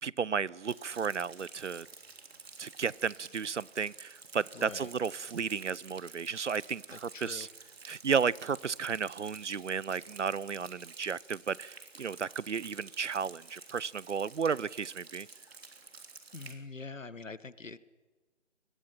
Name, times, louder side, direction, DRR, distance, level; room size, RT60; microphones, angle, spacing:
voice 1, 0.0-1.9 2.6-7.5 7.9-15.3, right 6 dB, 70° right, 24 dB, 0.7 m, -33 dB
Rain, 0.7-16.6, right 4 dB, 55° right, 3.4 m, -51 dB
voice 2, 4.5-4.9 6.9-7.5 16.3-17.8, left 3 dB, 85° left, 16 dB, 1.5 m, -44 dB
26.5 x 21.5 x 5.9 m, 1.3 s
figure-of-eight pair, 155°, 37 cm